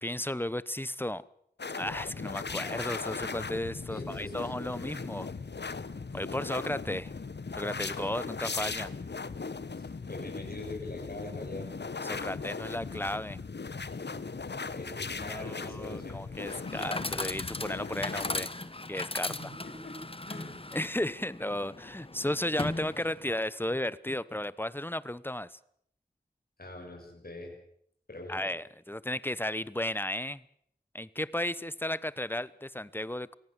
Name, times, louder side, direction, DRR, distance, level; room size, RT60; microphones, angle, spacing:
voice 1, 0.0-1.2 1.8-5.3 6.1-7.1 7.6-8.9 12.0-13.4 15.2-18.5 18.9-19.3 20.3-20.4 20.7-25.6 28.3-30.4 30.9-33.3, left 1 dB, 10° left, 18 dB, 1.0 m, -34 dB
sound 1, 1.6-18.5, left 4 dB, 75° left, 1.1 m, -38 dB
voice 2, 3.9-4.6 9.7-11.7 13.9-16.2 19.3-20.0 20.3-20.6 26.6-27.5 28.1-28.4, left 2 dB, 60° left, 1 dB, 6.7 m, -43 dB
Chatter / Coin (dropping), 16.3-23.4, left 2 dB, 30° left, 1.3 m, -38 dB
24.5 x 17.0 x 8.2 m, 0.67 s
wide cardioid pair, 50°, 18 cm